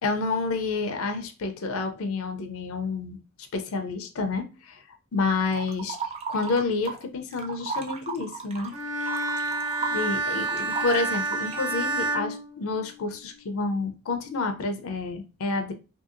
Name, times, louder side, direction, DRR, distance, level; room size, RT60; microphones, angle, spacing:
voice 1, 0.0-3.2 3.5-4.8 5.1-6.0 6.3-8.7 9.9-15.7, left 3 dB, 70° left, 7 dB, 0.5 m, -29 dB
sound 1, 5.5-7.0 7.3-11.7, right 5 dB, 25° right, 0.3 m, -35 dB
Bowed string instrument, 8.7-13.2, right 2 dB, 75° right, 0.7 m, -29 dB
2.7 x 2.6 x 2.5 m, 0.31 s
head